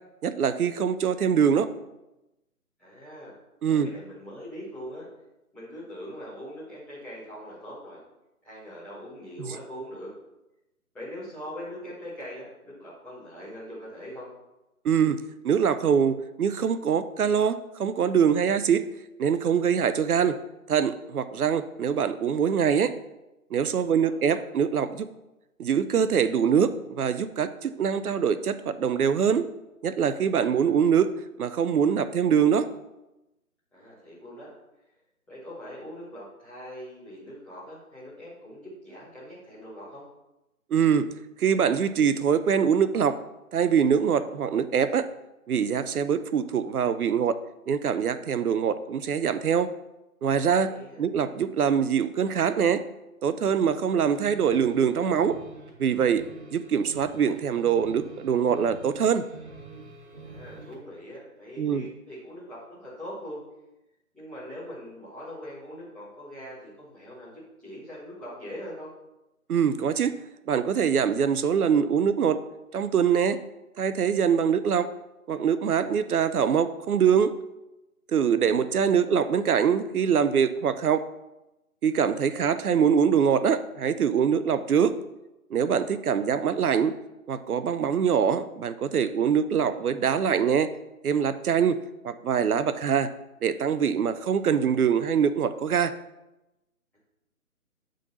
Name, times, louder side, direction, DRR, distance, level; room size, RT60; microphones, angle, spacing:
voice 1, 0.2-1.7 3.6-3.9 9.5-9.6 14.8-15.2 15.4-18.9 19.2-20.4 20.7-22.9 23.5-25.1 25.6-29.4 29.8-31.1 31.4-32.7 40.7-41.1 41.4-43.2 43.5-45.1 45.5-47.4 47.7-49.7 50.2-50.7 51.0-52.8 53.2-55.4 55.8-56.2 56.5-59.2 61.6-61.9 69.5-70.1 70.5-72.4 72.7-73.4 73.8-74.9 75.3-77.3 78.1-81.1 81.8-85.0 85.5-87.0 87.3-90.7 91.0-91.8 92.0-93.1 93.4-95.9, right 7 dB, 75° right, 12 dB, 0.5 m, -23 dB
voice 2, 2.8-3.3 3.7-5.1 5.5-8.0 8.4-10.1 10.9-14.3 23.8-24.1 33.7-34.5 35.3-40.0 50.6-51.0 60.2-63.4 64.1-68.9 85.9-86.3, equal, 5° left, -12 dB, 1.0 m, -42 dB
sound 1, 54.1-60.8, right 3 dB, 45° right, 1.8 m, -46 dB
8.2 x 3.8 x 4.0 m, 0.97 s
figure-of-eight pair, 145°, 45 cm